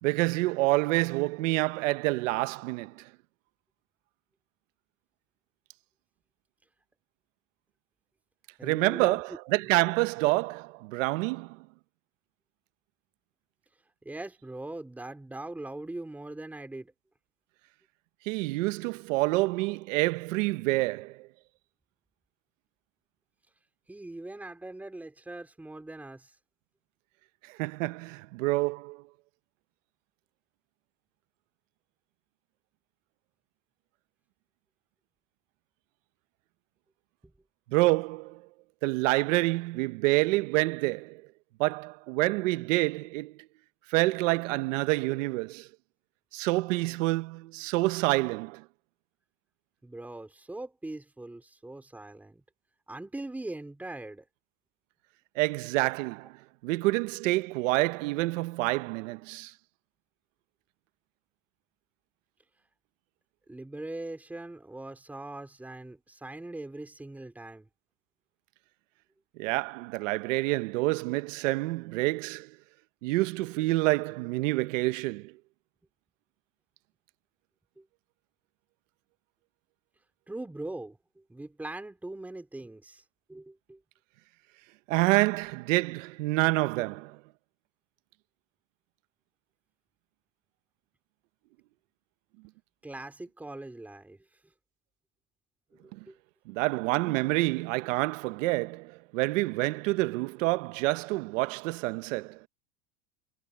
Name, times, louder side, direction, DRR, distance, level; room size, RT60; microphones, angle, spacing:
voice 1, 0.0-3.1 8.6-11.7 18.2-21.3 27.5-29.0 37.7-38.5 38.8-41.2 41.6-43.3 43.9-45.7 46.3-48.6 55.4-56.4 56.6-59.5 69.4-72.6 73.0-75.3 84.9-87.2 95.9-96.0 96.5-102.4, right 21 dB, 65° right, 1.0 m, -27 dB
voice 2, 8.6-9.4 14.0-16.9 23.9-26.4 37.2-37.3 46.9-47.0 49.8-52.4 52.9-54.2 63.5-67.7 77.8-77.9 80.3-83.0 83.3-83.8 92.8-94.2 95.7-96.2, right 2 dB, 5° right, 3.6 m, -41 dB
supercardioid pair, 175°, 42 cm